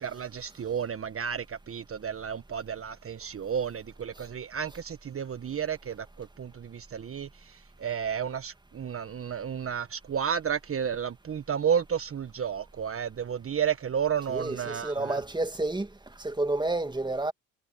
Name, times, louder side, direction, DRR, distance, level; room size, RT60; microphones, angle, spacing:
voice 1, 0.0-15.2, right 8 dB, 40° right, 1.4 m, -32 dB
voice 2, 14.3-15.9 16.2-17.3, right 2 dB, 10° right, 2.2 m, -30 dB
hypercardioid pair, 55°, 35 cm